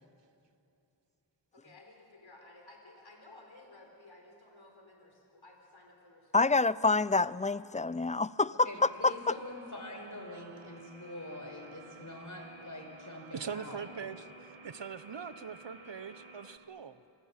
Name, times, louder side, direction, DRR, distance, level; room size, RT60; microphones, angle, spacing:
voice 1, 1.5-6.7, left 2 dB, 85° left, 1 dB, 3.9 m, -56 dB
voice 2, 6.3-9.1, left 3 dB, 15° left, 18 dB, 0.5 m, -27 dB
voice 3, 8.6-13.8, left 1 dB, 40° left, 3 dB, 5.1 m, -44 dB
sound 1, 8.7-16.6, right 2 dB, 90° right, 1.8 m, -53 dB
voice 4, 13.3-17.0, right 6 dB, 70° right, 13 dB, 1.0 m, -42 dB
27.0 x 25.5 x 7.5 m, 2.6 s
wide cardioid pair, 50°, 45 cm